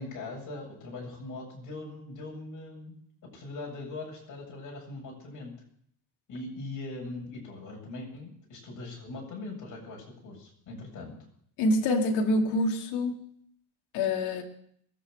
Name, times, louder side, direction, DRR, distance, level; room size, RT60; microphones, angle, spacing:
voice 1, 0.0-2.9 3.3-5.5 6.3-11.1, left 2 dB, 45° left, 0 dB, 7.4 m, -41 dB
voice 2, 11.6-13.2 13.9-14.4, left 1 dB, 70° left, 1 dB, 2.6 m, -26 dB
23.5 x 7.9 x 6.6 m, 0.66 s
supercardioid pair, 110°, 42 cm